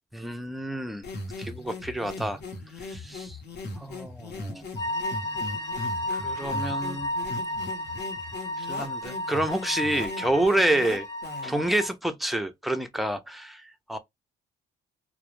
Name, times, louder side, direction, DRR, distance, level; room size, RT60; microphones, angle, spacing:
voice 1, 0.1-1.0 1.4-2.4 2.7-3.4 3.7-4.7 6.1-7.1 8.6-11.1 11.4-14.0, right 1 dB, ahead, 0.4 m, -28 dB
sound 1, 1.0-11.7, left 2 dB, 55° left, 0.8 m, -39 dB
sound 2, 4.8-11.9, left 1 dB, 20° left, 0.8 m, -33 dB
2.2 x 2.0 x 3.0 m
cardioid pair, 90°, 20 cm